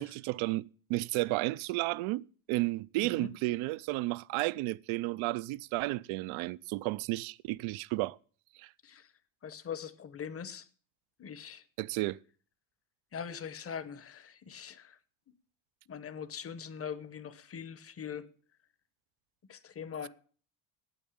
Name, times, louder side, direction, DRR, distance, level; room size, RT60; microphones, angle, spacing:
voice 1, 0.0-8.2 8.6-8.7 11.8-12.2, right 19 dB, 70° right, 0.6 m, -33 dB
voice 2, 9.4-10.7 11.2-11.6 13.1-15.0 15.9-18.3 19.5-20.1, left 7 dB, 30° left, 0.8 m, -42 dB
9.1 x 8.3 x 8.6 m
cardioid pair, 135°, 50 cm